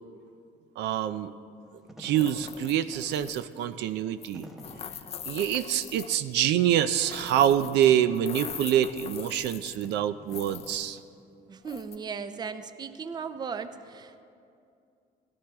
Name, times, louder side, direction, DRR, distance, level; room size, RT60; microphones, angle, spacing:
voice 1, 0.8-1.3 2.0-4.5 5.3-11.0, right 10 dB, 75° right, 11 dB, 0.5 m, -26 dB
Wind / Fire, 1.6-11.2, equal, ahead, 0.9 m, -50 dB
sound 1, 2.2-3.6 4.2-6.4 6.9-7.9 8.1-10.0 10.3-10.9 11.6-12.0, left 8 dB, 35° left, 0.5 m, -42 dB
voice 2, 11.5-14.2, right 5 dB, 25° right, 10 dB, 0.5 m, -37 dB
18.0 x 13.0 x 3.5 m, 2.4 s
cardioid pair, 135°, 18 cm